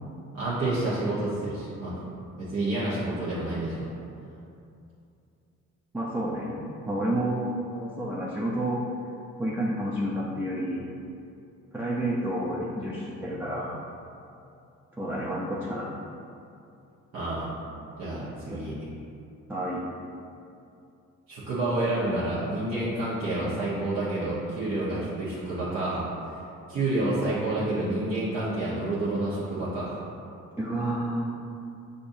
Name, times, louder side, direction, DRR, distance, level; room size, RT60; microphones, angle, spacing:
voice 1, 0.3-2.0 2.4-3.9 17.1-17.5 18.0-18.8 21.3-26.0 26.7-30.0, right 2 dB, 60° right, -11 dB, 1.2 m, -29 dB
voice 2, 5.9-8.8 9.4-10.9 11.7-13.7 15.0-15.9 18.5-18.6 19.5-19.8 30.6-31.2, right 1 dB, 5° right, -6 dB, 0.5 m, -30 dB
6.6 x 2.6 x 2.7 m, 2.6 s
cardioid pair, 90°, 30 cm